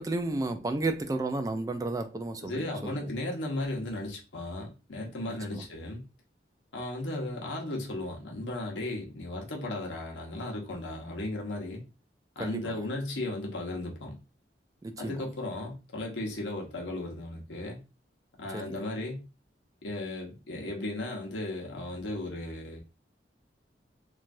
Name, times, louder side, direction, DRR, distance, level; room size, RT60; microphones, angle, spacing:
voice 1, 0.0-3.1 5.5-5.7 12.4-12.7 14.8-15.2 18.5-18.7, right 2 dB, 20° right, 0.3 m, -32 dB
voice 2, 2.4-6.0 6.7-11.8 12.4-14.2 15.0-17.8 18.4-19.2 19.8-22.8, left 2 dB, 80° left, 0.9 m, -35 dB
3.2 x 2.3 x 2.5 m
head